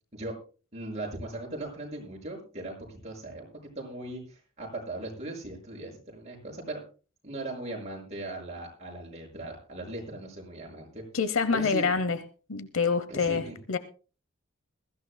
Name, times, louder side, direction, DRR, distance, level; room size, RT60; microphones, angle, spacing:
voice 1, 0.7-3.5 3.7-6.8 7.2-11.0 11.5-11.9 13.1-13.6, right 2 dB, 35° right, -1 dB, 6.4 m, -38 dB
voice 2, 11.1-12.2 12.5-13.8, left 5 dB, 90° left, 13 dB, 0.9 m, -26 dB
22.0 x 14.5 x 2.3 m, 0.36 s
head